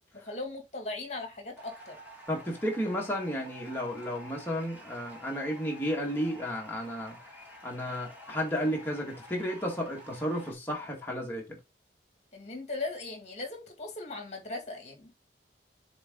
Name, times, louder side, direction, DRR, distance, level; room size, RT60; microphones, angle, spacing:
voice 1, 0.1-2.0 12.3-15.1, left 2 dB, 40° left, 2.3 m, -38 dB
sound 1, 1.6-10.5, equal, 10° right, 2.5 m, -50 dB
voice 2, 2.3-7.2 7.6-11.6, equal, 10° left, 2.0 m, -33 dB
7.0 x 4.3 x 3.8 m
head